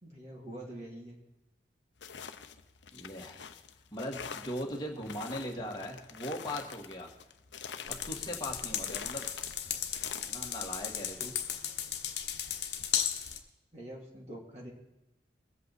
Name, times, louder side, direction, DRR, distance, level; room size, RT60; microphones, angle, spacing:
voice 1, 0.0-1.2 13.7-14.7, right 1 dB, 40° right, -3 dB, 2.6 m, -45 dB
sound 1, 2.0-10.3, left 7 dB, 85° left, 0.8 m, -46 dB
voice 2, 2.9-3.4 3.9-7.1 7.9-9.3 10.3-11.3, equal, 25° left, -1 dB, 2.0 m, -39 dB
sound 2, 7.9-13.4, left 9 dB, 65° left, 1.2 m, -35 dB
22.0 x 8.3 x 4.1 m, 0.97 s
head